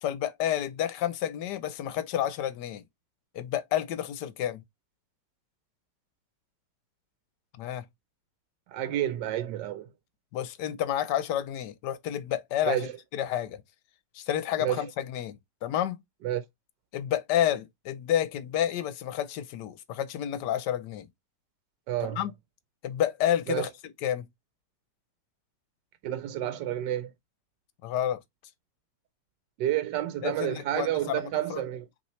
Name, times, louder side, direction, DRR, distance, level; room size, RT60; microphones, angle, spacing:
voice 1, 0.0-2.8 3.3-4.6 7.6-7.8 10.3-13.6 14.1-16.0 16.9-21.1 22.0-22.3 22.8-23.7 24.0-24.3 27.8-28.2 30.2-31.6, left 11 dB, 75° left, 1.2 m, -30 dB
voice 2, 8.7-9.9 12.6-12.9 14.6-14.8 16.2-16.4 21.9-22.2 23.5-23.7 26.0-27.1 29.6-31.9, right 12 dB, 85° right, 1.2 m, -30 dB
5.5 x 3.1 x 3.1 m
omnidirectional pair, 1.9 m